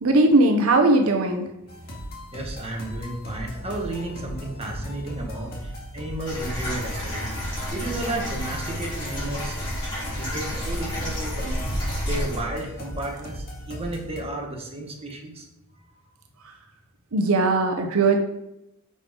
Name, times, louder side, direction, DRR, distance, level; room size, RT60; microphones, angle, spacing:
voice 1, 0.0-1.4 17.1-18.2, right 2 dB, 85° right, 4 dB, 0.8 m, -19 dB
sound 1, 1.7-14.2, equal, 45° left, 2.1 m, -37 dB
voice 2, 2.3-9.7 10.2-11.6 12.0-15.4, right 2 dB, 30° right, 0 dB, 1.6 m, -33 dB
sound 2, 6.2-12.4, equal, 20° left, 3.3 m, -30 dB
10.0 x 5.3 x 3.8 m, 0.88 s
head